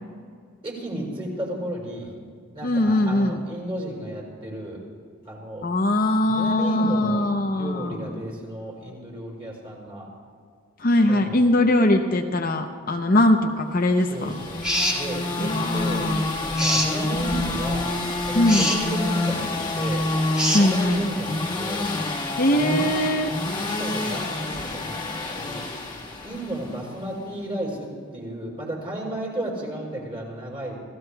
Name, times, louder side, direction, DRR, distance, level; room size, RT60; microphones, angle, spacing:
voice 1, 0.6-2.1 2.5-4.8 5.2-5.6 6.2-10.1 11.0-11.4 14.1-16.1 16.4-17.9 18.3-20.0 20.6-21.9 22.5-22.9 23.6-25.6 26.2-30.7, right 1 dB, 25° right, -4 dB, 4.8 m, -33 dB
voice 2, 2.6-3.4 5.6-8.1 10.8-14.3 15.4-16.2 18.3-18.7 20.5-21.1 22.4-23.3, left 1 dB, 40° left, 4 dB, 0.7 m, -21 dB
sound 1, 14.0-26.9, left 2 dB, 20° left, 1.6 m, -28 dB
sound 2, 14.6-15.0 16.6-16.9 18.5-18.8 20.4-20.7, equal, 5° right, 2.0 m, -23 dB
28.0 x 16.5 x 2.3 m, 2.1 s
head